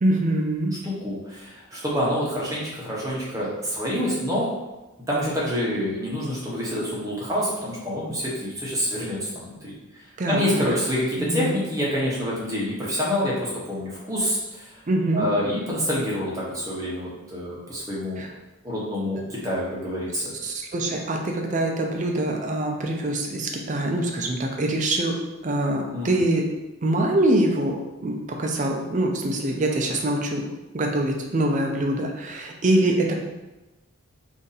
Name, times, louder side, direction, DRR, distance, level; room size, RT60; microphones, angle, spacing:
voice 1, 0.0-0.7 10.2-10.7 11.2-11.6 14.9-15.3 18.2-18.3 20.4-25.2 25.4-26.5 26.8-30.4 30.7-33.2, right 1 dB, 35° right, 2 dB, 0.4 m, -24 dB
voice 2, 0.8-4.5 5.1-9.7 10.3-14.7 15.1-18.2 18.6-20.3 25.9-26.2, equal, 15° right, -6 dB, 0.8 m, -27 dB
2.6 x 2.5 x 3.9 m, 1.1 s
head